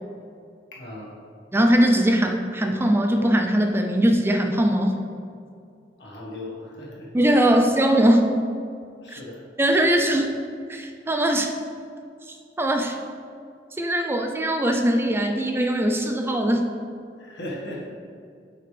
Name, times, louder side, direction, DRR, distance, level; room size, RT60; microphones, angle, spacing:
voice 1, 0.7-1.1 6.0-7.1 9.0-9.4 17.2-17.9, left 1 dB, 70° left, -4 dB, 1.7 m, -37 dB
voice 2, 1.5-5.0 7.1-8.4 9.1-9.2 9.6-10.3 10.7-11.5 12.3-13.0 13.8-16.6, right 1 dB, 15° right, 4 dB, 0.4 m, -21 dB
8.3 x 5.8 x 3.4 m, 2.3 s
head